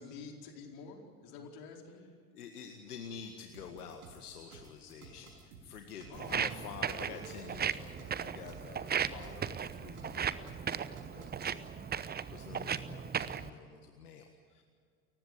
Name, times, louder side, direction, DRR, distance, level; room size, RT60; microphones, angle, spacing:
voice 1, 0.0-2.1 6.1-6.4 12.8-13.0, left 4 dB, 50° left, 2 dB, 4.6 m, -49 dB
voice 2, 2.3-14.6, left 7 dB, 75° left, 5 dB, 1.8 m, -49 dB
sound 1, 3.5-11.4, right 5 dB, 65° right, 5.7 m, -55 dB
Walk footsteps, 6.1-13.5, right 7 dB, 20° right, 0.9 m, -36 dB
29.5 x 15.5 x 8.6 m, 2.2 s
figure-of-eight pair, 75°, 46 cm